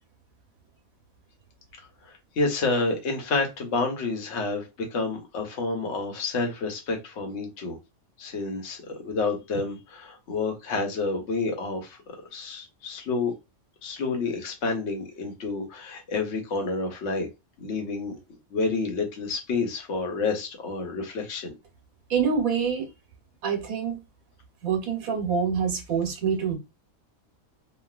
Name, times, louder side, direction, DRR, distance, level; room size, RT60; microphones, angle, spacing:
voice 1, 2.0-7.8 8.2-12.0 12.3-13.3 13.8-17.3 17.6-18.1 18.5-21.5, left 3 dB, 55° left, 1.1 m, -29 dB
voice 2, 22.1-22.9 23.4-24.0 24.6-26.6, right 6 dB, 75° right, 1.4 m, -26 dB
3.1 x 2.4 x 2.4 m
omnidirectional pair, 1.5 m